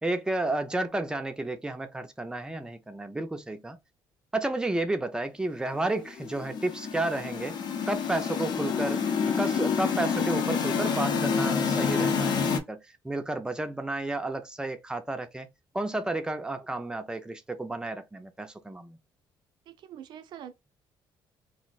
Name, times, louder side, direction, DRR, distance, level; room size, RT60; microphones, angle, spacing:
voice 1, 0.0-3.8 4.3-7.6 7.9-9.1 9.4-15.5 15.7-19.0, right 2 dB, 10° right, 0.5 m, -32 dB
sound 1, 6.2-12.6, left 6 dB, 60° left, 0.7 m, -28 dB
voice 2, 19.7-20.5, right 9 dB, 65° right, 0.5 m, -44 dB
2.5 x 2.1 x 3.8 m
cardioid pair, 135°, 8 cm